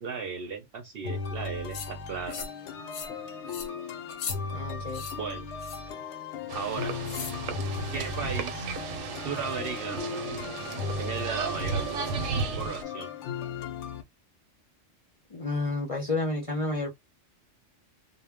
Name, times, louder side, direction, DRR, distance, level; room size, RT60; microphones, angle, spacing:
voice 1, 0.0-2.5 5.2-5.5 6.5-6.9 7.9-8.7 9.1-10.1 10.9-11.9 12.6-13.1, right 5 dB, 60° right, 0.7 m, -35 dB
sound 1, 1.0-14.0, left 5 dB, 70° left, 0.8 m, -37 dB
sound 2, 1.7-1.9 2.3-2.6 2.9-3.2 3.5-3.7 4.1-4.4 4.9-5.2 5.6-5.9 7.0-7.4, left 6 dB, 90° left, 1.0 m, -38 dB
voice 2, 4.5-5.0 15.3-16.9, left 2 dB, 35° left, 0.6 m, -30 dB
sound 3, 6.5-12.8, right 5 dB, 85° right, 0.9 m, -34 dB
2.1 x 2.1 x 3.4 m
omnidirectional pair, 1.3 m